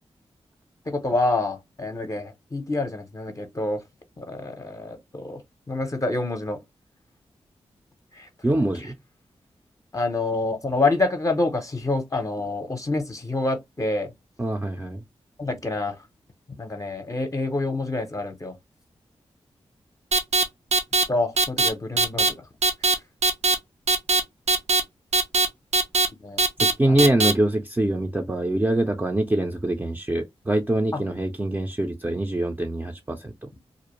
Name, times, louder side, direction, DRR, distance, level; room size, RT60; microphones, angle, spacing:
voice 1, 0.9-3.8 4.2-5.4 5.7-6.6 8.1-8.3 9.9-14.1 15.4-16.0 16.6-18.6 21.1-22.3 26.2-26.4 26.9-27.1 30.9-31.0, left 2 dB, 30° left, 0.6 m, -27 dB
voice 2, 8.4-9.0 14.4-15.0 26.8-33.5, right 1 dB, 15° right, 0.4 m, -24 dB
sound 1, 20.1-20.4 20.7-21.0 21.4-21.7 22.0-22.3 22.6-22.9 23.2-23.6 23.9-24.2 24.5-24.8 25.1-25.5 25.7-26.1 26.4-26.7 27.0-27.3, right 3 dB, 80° right, 0.5 m, -19 dB
2.5 x 2.0 x 2.9 m
cardioid pair, 55°, 11 cm